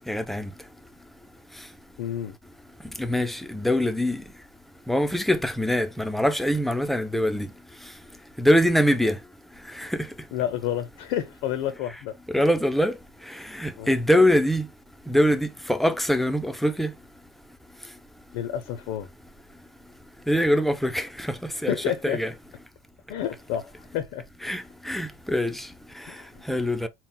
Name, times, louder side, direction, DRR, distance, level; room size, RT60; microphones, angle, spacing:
voice 1, 0.1-0.5 3.0-4.2 4.9-7.5 8.4-9.2 9.8-10.0 12.3-13.0 13.3-14.7 15.1-16.9 20.3-21.8 22.0-22.3 24.4-25.7 26.5-26.9, equal, ahead, 0.3 m, -23 dB
voice 2, 2.0-2.3 9.8-9.9 10.3-12.1 13.8-13.9 18.3-19.1 21.6-22.2 23.1-24.2 26.1-26.4, left 10 dB, 60° left, 0.5 m, -30 dB
4.2 x 2.0 x 3.7 m
cardioid pair, 145°, 13 cm